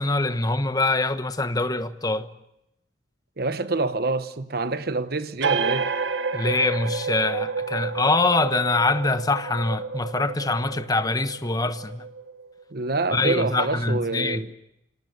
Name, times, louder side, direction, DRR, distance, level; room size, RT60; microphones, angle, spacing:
voice 1, 0.0-2.3 6.3-12.1 13.1-14.4, left 2 dB, 20° left, 1.2 m, -24 dB
voice 2, 3.4-5.9 12.7-14.5, right 3 dB, 55° right, 1.1 m, -26 dB
sound 1, 5.4-12.6, right 5 dB, 80° right, 1.7 m, -30 dB
26.5 x 18.5 x 9.4 m
head